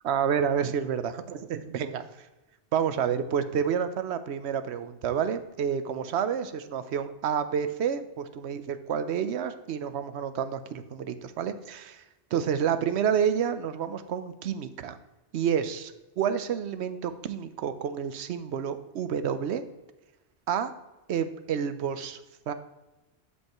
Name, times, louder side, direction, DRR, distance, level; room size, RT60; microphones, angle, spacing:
voice 1, 0.0-2.3 2.7-12.0 12.3-15.0 15.3-19.6 20.5-20.7 21.1-22.2 22.5-22.6, right 8 dB, 90° right, 11 dB, 0.9 m, -29 dB
11.5 x 5.4 x 3.0 m, 1.1 s
omnidirectional pair, 1.1 m